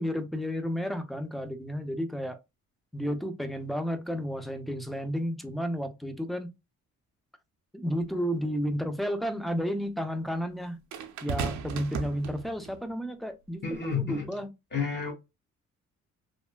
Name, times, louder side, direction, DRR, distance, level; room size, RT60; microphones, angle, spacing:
voice 1, 0.0-2.4 2.9-6.5 7.7-10.8 11.2-14.5, equal, ahead, 0.5 m, -32 dB
sound 1, 8.0-8.1 10.9-12.8 13.7-13.9, right 5 dB, 70° right, 0.6 m, -35 dB
voice 2, 13.6-14.3 14.7-15.1, left 5 dB, 35° left, 1.1 m, -30 dB
3.3 x 2.1 x 2.2 m
cardioid pair, 90°, 30 cm